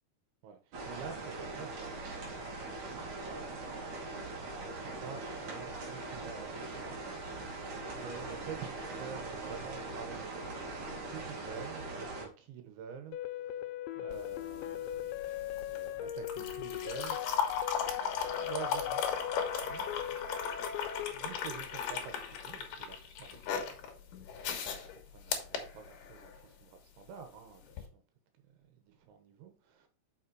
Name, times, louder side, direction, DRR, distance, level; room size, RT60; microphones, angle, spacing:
voice 1, 0.4-4.3 4.7-10.3 10.9-17.2 18.1-19.1 19.6-20.2 21.1-28.0 28.6-29.9, right 7 dB, 85° right, 3.4 m, -49 dB
sound 1, 0.7-12.3, right 2 dB, 50° right, 3.4 m, -41 dB
sound 2, 13.1-21.1, left 11 dB, 85° left, 2.9 m, -39 dB
sound 3, 14.1-26.4 27.7-27.8, left 7 dB, 65° left, 2.3 m, -37 dB
6.4 x 6.1 x 4.6 m
omnidirectional pair, 5.2 m